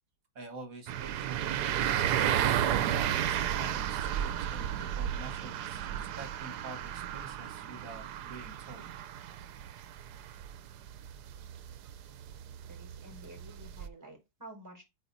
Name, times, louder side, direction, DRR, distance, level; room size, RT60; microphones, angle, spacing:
voice 1, 0.4-1.6 2.3-8.9, right 4 dB, 60° right, 1.9 m, -47 dB
sound 1, 0.9-13.9, right 10 dB, 85° right, 1.2 m, -33 dB
voice 2, 12.7-14.8, right 1 dB, 10° right, 4.5 m, -50 dB
8.8 x 4.4 x 2.7 m
omnidirectional pair, 1.7 m